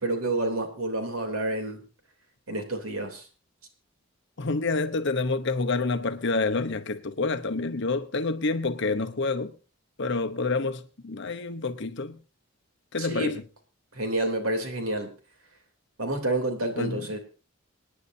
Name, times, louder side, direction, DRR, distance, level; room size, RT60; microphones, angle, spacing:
voice 1, 0.0-1.8 2.5-3.2 13.0-13.3 13.9-15.1 16.0-17.2, right 2 dB, 85° right, 3.2 m, -29 dB
voice 2, 4.4-9.5 10.0-12.2 12.9-13.4 16.8-17.1, left 3 dB, 55° left, 0.9 m, -28 dB
27.0 x 9.6 x 2.7 m
head